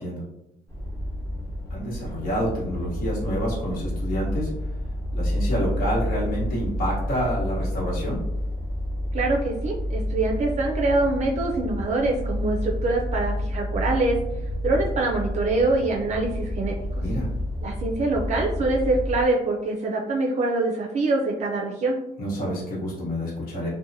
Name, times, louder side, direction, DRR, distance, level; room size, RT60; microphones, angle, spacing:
sound 1, 0.7-19.2, left 1 dB, 15° left, 0.9 m, -29 dB
voice 1, 1.7-4.5 5.1-8.2 17.0-17.3 22.2-23.7, equal, 60° left, -6 dB, 1.1 m, -28 dB
voice 2, 9.1-14.2 14.6-16.7 17.6-22.0, right 2 dB, 45° right, -1 dB, 0.4 m, -24 dB
2.7 x 2.1 x 2.6 m, 0.88 s
cardioid pair, 110°, 17 cm